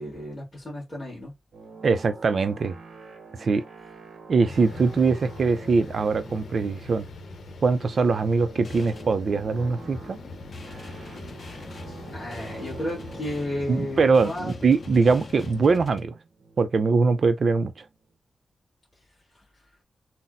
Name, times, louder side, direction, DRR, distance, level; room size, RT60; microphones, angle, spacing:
voice 1, 0.0-1.3 12.1-14.5 14.8-15.0 19.3-19.4, left 1 dB, 10° left, 1.7 m, -33 dB
sound 1, 1.5-18.0, right 4 dB, 90° right, 0.7 m, -47 dB
voice 2, 1.8-2.7 3.4-3.6 4.3-7.0 7.6-10.2 13.7-16.1 16.6-17.9, right 4 dB, 50° right, 0.4 m, -22 dB
sound 2, 4.5-15.8, left 3 dB, 85° left, 0.7 m, -43 dB
sound 3, 8.6-16.0, left 3 dB, 50° left, 0.6 m, -43 dB
4.0 x 2.0 x 2.5 m
wide cardioid pair, 165°, 0 cm